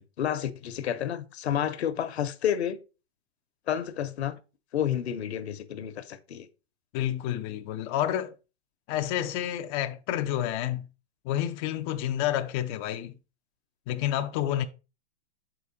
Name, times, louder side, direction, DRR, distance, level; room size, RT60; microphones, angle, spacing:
voice 1, 0.0-2.8 3.7-4.3 4.7-6.5, left 10 dB, 75° left, 0.9 m, -30 dB
voice 2, 6.9-8.3 8.9-10.9 11.2-13.1 13.9-14.6, left 12 dB, 25° left, 0.3 m, -29 dB
6.7 x 4.9 x 4.0 m
hypercardioid pair, 130°, 33 cm